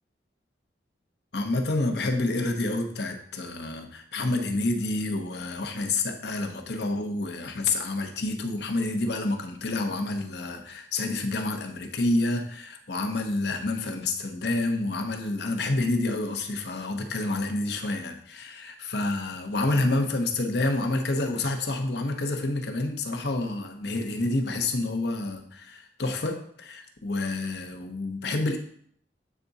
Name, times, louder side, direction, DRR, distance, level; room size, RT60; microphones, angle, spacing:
voice 1, 1.3-28.6, left 2 dB, 65° left, 5 dB, 0.9 m, -28 dB
8.3 x 3.6 x 4.0 m, 0.63 s
head